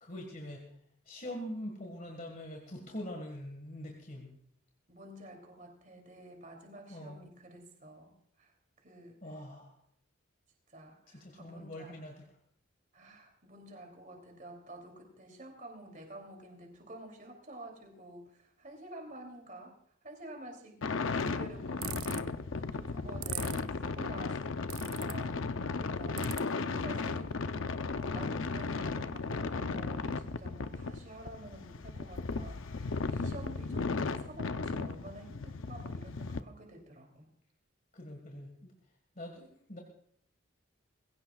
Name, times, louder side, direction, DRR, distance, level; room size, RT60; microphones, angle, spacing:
voice 1, 0.0-0.7 1.1-4.3 6.9-7.2 9.2-9.7 11.1-12.2 37.9-38.7 39.2-39.8, left 1 dB, 40° left, 2 dB, 1.8 m, -43 dB
voice 2, 4.9-9.2 10.7-11.9 12.9-19.8 20.0-20.8 21.2-27.4 27.9-37.3, right 1 dB, 40° right, 2 dB, 3.0 m, -50 dB
sound 1, 20.8-36.4, left 4 dB, 75° left, 0.6 m, -35 dB
sound 2, 21.8-22.2 23.2-23.6 24.7-25.1 26.2-26.4, right 15 dB, 85° right, 0.6 m, -38 dB
21.5 x 16.0 x 2.4 m, 0.65 s
head